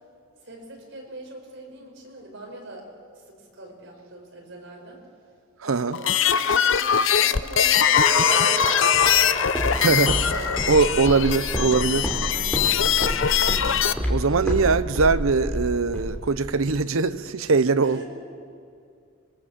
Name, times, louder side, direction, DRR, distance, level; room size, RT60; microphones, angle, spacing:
voice 1, 0.4-2.9 3.1-5.0 5.6-9.7 10.0-10.7 11.3-12.1 14.0-14.4 17.8-18.0, right 1 dB, 60° right, 5.5 m, -42 dB
sound 1, 5.9-13.9, left 9 dB, 65° left, 0.7 m, -21 dB
sound 2, 7.9-13.8 14.1-14.2, left 1 dB, 25° left, 3.7 m, -32 dB
Walk footsteps, 8.9-16.8, equal, 5° left, 3.2 m, -29 dB
voice 2, 9.8-10.2 10.7-12.1 14.1-18.0, right 4 dB, 80° right, 0.7 m, -21 dB
25.5 x 22.5 x 7.5 m
head